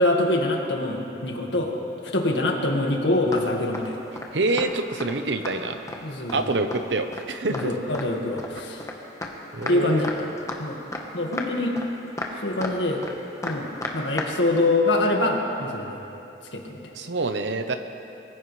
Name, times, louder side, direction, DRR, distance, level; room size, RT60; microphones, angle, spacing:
voice 1, 0.0-1.7 2.1-4.0 6.0-6.5 7.5-8.8 9.7-10.3 10.6-10.8 11.1-11.7 12.4-13.0 13.4-13.7 13.9-16.0 16.5-16.9, left 2 dB, 90° left, 1 dB, 1.8 m, -24 dB
sound 1, 3.3-3.4 3.7-3.9 4.2-4.3 4.6-4.7 5.0-5.1 5.4-6.0 6.3-6.4 6.7-6.8 7.1-7.2 7.5-7.7 7.9-8.9 9.2-9.3 9.6-9.8 10.0-10.6 10.9-11.0 11.3-11.5 11.8-11.9 12.2-12.8 13.0-13.1 13.4-14.3 14.6-14.7, left 2 dB, 20° left, 1.2 m, -32 dB
voice 2, 4.3-5.8 6.3-7.7 9.5-10.0 16.9-17.8, right 2 dB, 80° right, 7 dB, 0.9 m, -26 dB
23.0 x 15.0 x 3.3 m, 2.9 s
head